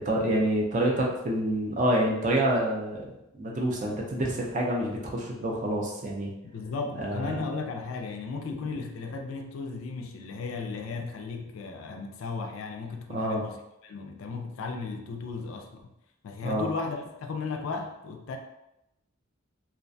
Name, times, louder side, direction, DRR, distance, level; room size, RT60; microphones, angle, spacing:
voice 1, 0.0-3.1 3.3-6.3 7.0-7.4 13.1-13.4 16.4-16.7, right 1 dB, 35° right, -2 dB, 0.4 m, -27 dB
voice 2, 6.5-13.6 13.8-15.9 16.2-18.4, left 4 dB, 70° left, 4 dB, 0.3 m, -35 dB
2.3 x 2.1 x 2.5 m, 0.87 s
head